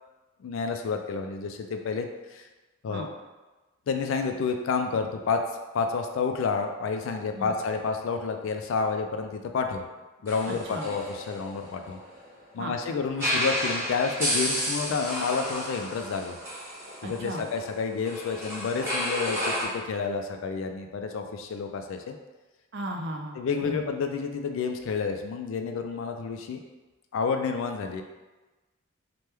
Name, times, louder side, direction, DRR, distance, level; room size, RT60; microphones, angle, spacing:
voice 1, 0.4-2.5 2.8-3.1 3.9-5.4 5.7-9.9 10.2-12.0 12.5-16.4 17.0-22.2 23.4-26.6 27.1-28.0, left 5 dB, 70° left, 6 dB, 0.3 m, -30 dB
sound 1, 10.3-12.3 13.1-19.6, equal, 10° right, 0.9 m, -31 dB
voice 2, 10.5-10.9 12.6-12.7 17.0-17.4 22.7-23.8, right 1 dB, 50° right, 1 dB, 0.4 m, -36 dB
3.0 x 2.2 x 3.3 m, 1.2 s
head